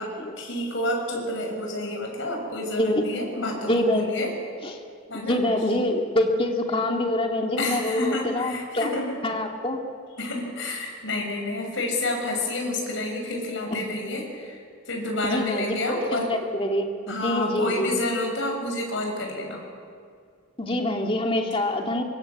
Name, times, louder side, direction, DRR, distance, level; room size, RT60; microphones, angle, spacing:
voice 1, 0.0-4.3 5.1-5.4 7.6-9.1 10.2-16.3 17.1-19.6, left 1 dB, 70° left, 1 dB, 6.7 m, -29 dB
voice 2, 3.5-4.3 4.6-4.8 5.1-8.9 9.2-9.8 13.7-13.8 15.2-16.9 17.2-18.0 20.6-22.0, left 1 dB, 30° left, 2 dB, 2.4 m, -25 dB
25.0 x 24.5 x 8.4 m, 2.3 s
head